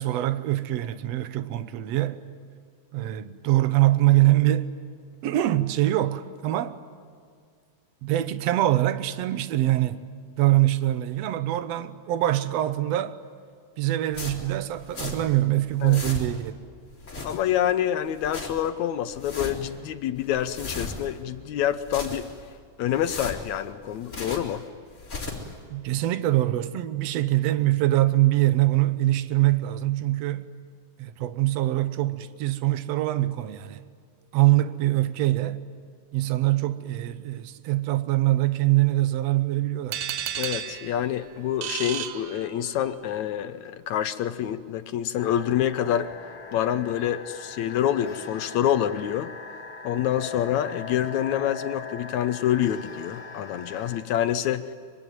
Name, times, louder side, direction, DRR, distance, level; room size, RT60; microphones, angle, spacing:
voice 1, 0.0-2.3 2.9-4.7 5.2-6.8 8.0-10.1 10.4-13.2 13.8-16.6 25.7-30.5 31.0-33.8 34.3-35.6 36.1-40.0, right 15 dB, 65° right, 1.9 m, -23 dB
sound 1, 14.1-15.4 15.7-16.5 16.9-17.7 18.1-18.7 19.1-19.8 20.2-21.2 21.7-22.5 22.9-24.6 24.9-25.6, left 3 dB, 25° left, 3.9 m, -37 dB
voice 2, 17.2-22.3 22.8-24.6 40.4-46.1 46.5-49.3 49.8-54.7, left 10 dB, 70° left, 1.9 m, -27 dB
sound 2, 39.9-42.9, right 11 dB, 85° right, 2.6 m, -33 dB
sound 3, 45.2-54.0, left 5 dB, 45° left, 2.3 m, -40 dB
24.5 x 24.5 x 9.5 m
omnidirectional pair, 3.7 m